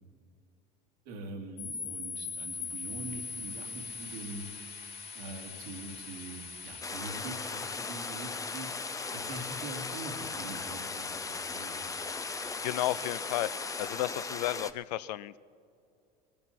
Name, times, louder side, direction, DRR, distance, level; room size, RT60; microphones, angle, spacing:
voice 1, 1.0-4.5 5.1-8.7 9.1-11.9, right 2 dB, 80° right, 1 dB, 2.5 m, -43 dB
sound 1, 1.6-13.9, left 5 dB, 50° left, 3.2 m, -42 dB
sound 2, 6.8-14.7, left 4 dB, 15° left, 0.6 m, -38 dB
voice 2, 12.6-13.5 13.8-15.4, left 14 dB, 90° left, 17 dB, 0.4 m, -32 dB
20.0 x 13.5 x 4.2 m, 2.5 s
supercardioid pair, 85°, 20 cm